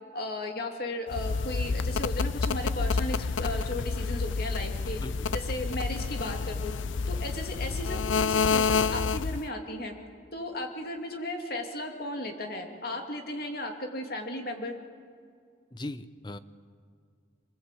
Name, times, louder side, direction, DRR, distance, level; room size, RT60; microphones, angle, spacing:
voice 1, 0.1-5.0 5.3-6.7 7.1-9.9 10.3-14.7, left 1 dB, 50° left, 3 dB, 2.7 m, -35 dB
sound 1, 1.1-9.5, left 5 dB, 80° left, 0.5 m, -29 dB
voice 2, 15.7-16.4, left 1 dB, 25° left, 12 dB, 0.8 m, -39 dB
28.0 x 19.5 x 8.4 m, 2.1 s
head